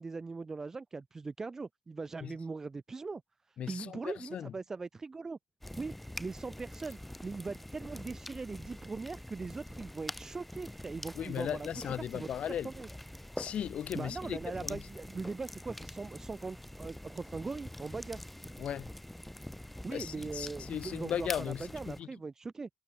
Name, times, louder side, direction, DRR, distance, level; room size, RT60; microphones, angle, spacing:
voice 1, 0.0-3.2 3.5-5.4 5.8-5.9 6.2-12.3 12.6-12.9 13.9-18.2 19.8-22.7, right 4 dB, 15° right, 2.7 m, -40 dB
voice 2, 3.6-4.5 11.1-12.7 13.4-14.8 18.6-18.9 19.9-22.1, left 9 dB, 40° left, 4.5 m, -37 dB
sound 1, 5.6-22.0, left 1 dB, 5° left, 5.8 m, -45 dB
cardioid pair, 165°, 3 cm